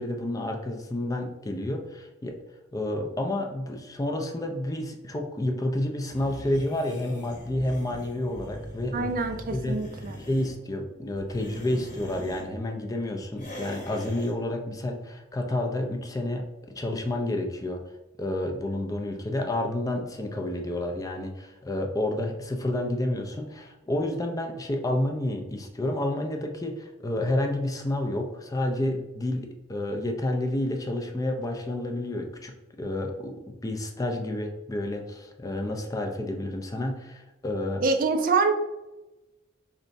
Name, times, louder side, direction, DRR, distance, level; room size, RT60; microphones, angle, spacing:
voice 1, 0.0-2.4 2.7-9.1 9.5-9.8 10.2-16.5 16.8-17.8 18.2-37.8, left 1 dB, 20° left, 3 dB, 0.4 m, -30 dB
sound 1, 6.1-10.5 11.2-12.5 13.4-14.4, equal, 40° left, 0.9 m, -41 dB
voice 2, 8.9-10.2 37.8-38.5, right 4 dB, 45° right, 7 dB, 0.4 m, -25 dB
4.0 x 3.3 x 2.6 m, 1.0 s
head